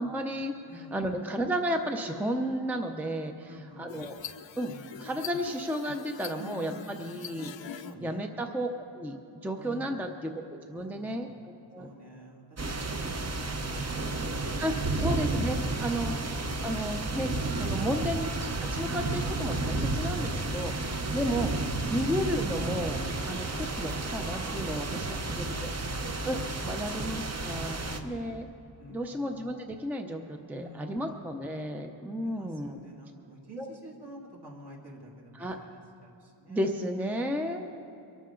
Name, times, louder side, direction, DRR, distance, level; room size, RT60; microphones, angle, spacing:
voice 1, 0.0-4.2 4.6-4.7 5.0-8.7 9.0-11.3 11.7-11.9 14.6-16.2 16.6-18.3 18.7-21.5 21.9-25.7 26.3-28.5 28.9-32.8 33.6-33.7 35.3-35.6 36.5-37.7, equal, 5° right, 4 dB, 0.6 m, -33 dB
voice 2, 0.7-1.2 3.4-3.9 4.6-5.0 6.3-7.0 7.8-8.2 9.5-10.0 10.7-11.4 11.8-14.6 15.5-15.8 18.6-19.0 24.3-24.7 25.0-25.7 27.8-28.4 28.8-29.2 30.5-31.2 32.2-36.6, right 1 dB, 55° right, -2 dB, 2.7 m, -49 dB
sound 1, 3.9-7.9, left 8 dB, 70° left, 0.7 m, -43 dB
sound 2, 12.6-28.0, right 2 dB, 35° right, 0.9 m, -32 dB
23.5 x 13.5 x 3.8 m, 2.7 s
wide cardioid pair, 155°, 47 cm